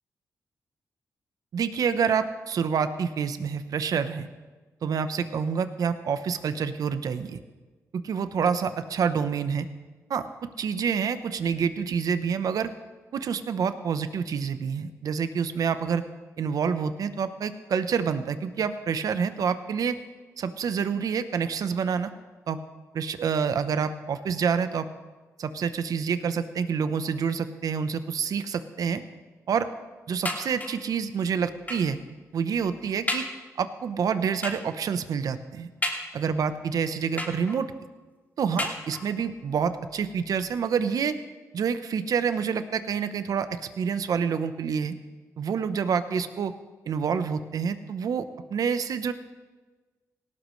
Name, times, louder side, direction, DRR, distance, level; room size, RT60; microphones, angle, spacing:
voice 1, 1.5-4.3 4.8-7.4 7.9-9.7 10.1-12.7 13.1-16.0 16.4-20.0 20.4-22.1 22.5-22.6 22.9-24.9 25.4-29.0 29.5-29.7 30.1-32.0 32.3-33.2 33.6-35.7 36.1-37.7 38.4-41.2 41.5-44.9 45.4-46.5 46.9-49.1, right 6 dB, 75° right, 11 dB, 0.9 m, -27 dB
sound 1, 30.2-30.9 31.7-32.0 32.5-32.6 33.1-33.4 34.4-34.8 35.8-36.4 37.2-37.8 38.6-39.3 40.1-40.2 40.5-40.6, left 2 dB, 25° left, 2.5 m, -33 dB
18.0 x 17.5 x 3.2 m, 1.3 s
cardioid pair, 80°, 6 cm